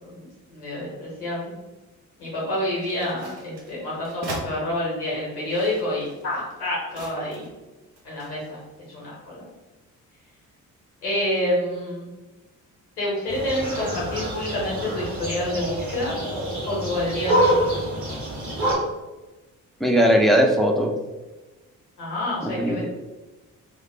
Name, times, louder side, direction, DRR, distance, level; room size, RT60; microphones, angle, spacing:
voice 1, 0.0-1.5 2.2-7.4 8.0-8.6 8.9-9.5 11.0-12.1 13.0-16.1 16.7-17.9 22.0-22.9, left 1 dB, 90° left, -5 dB, 0.8 m, -28 dB
sound 1, 2.7-4.5 5.3-7.6 8.0-8.6, right 2 dB, 60° right, 0.8 m, -40 dB
sound 2, 13.3-18.7, equal, 40° right, 1.5 m, -26 dB
voice 2, 19.8-20.9 22.6-22.9, equal, ahead, 1 dB, 0.4 m, -18 dB
3.0 x 2.0 x 3.2 m, 1.1 s
figure-of-eight pair, 40°, 44 cm